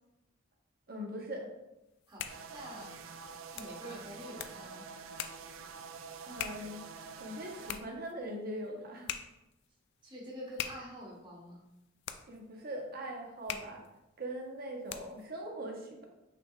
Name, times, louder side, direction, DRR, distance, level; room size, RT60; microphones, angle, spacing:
voice 1, 0.9-1.5 6.2-6.8 7.2-9.1 12.3-13.8 14.2-16.0, right 1 dB, 50° right, 1 dB, 0.8 m, -41 dB
sound 1, 1.9-15.3, left 10 dB, 60° left, 0.3 m, -46 dB
voice 2, 2.1-2.9 3.5-4.8 10.0-11.6, equal, 25° right, -4 dB, 1.1 m, -46 dB
sound 2, 2.3-7.8, right 5 dB, 90° right, 0.4 m, -47 dB
5.9 x 3.4 x 2.4 m, 0.95 s
head